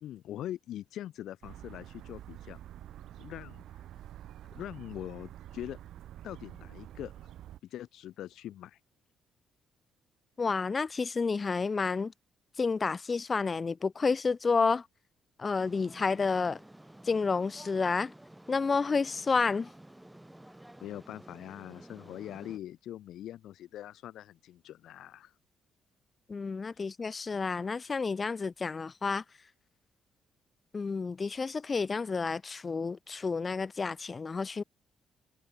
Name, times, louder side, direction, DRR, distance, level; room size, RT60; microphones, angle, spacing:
voice 1, 0.0-2.6 3.2-3.6 4.5-5.8 6.2-7.1 7.6-8.8 20.8-25.3, left 12 dB, 80° left, 1.2 m, -42 dB
sound 1, 1.4-7.6, right 12 dB, 75° right, 3.1 m, -48 dB
voice 2, 10.4-12.1 12.6-14.9 15.4-16.6 17.0-18.1 18.5-19.7 26.3-29.2 30.7-34.6, left 4 dB, 35° left, 0.5 m, -30 dB
sound 2, 15.5-22.6, right 1 dB, 5° right, 5.9 m, -52 dB
cardioid pair, 90°, 0 cm